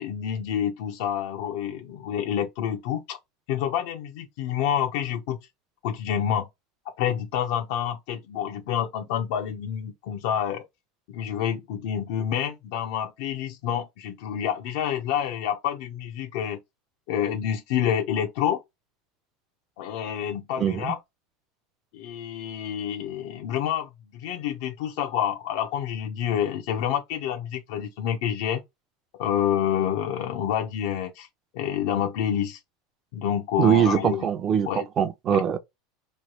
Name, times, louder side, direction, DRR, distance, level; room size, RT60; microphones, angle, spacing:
voice 1, 0.0-3.2 3.5-5.4 5.8-6.5 7.0-10.6 11.1-16.6 17.1-18.6 19.8-21.0 21.9-28.6 29.2-31.3 31.5-32.6 33.1-34.2 34.6-34.9 35.3-35.4, left 9 dB, 65° left, 0.7 m, -28 dB
voice 2, 20.6-20.9 33.6-35.6, right 8 dB, 30° right, 0.6 m, -22 dB
3.1 x 2.3 x 3.0 m
supercardioid pair, 150°, 0 cm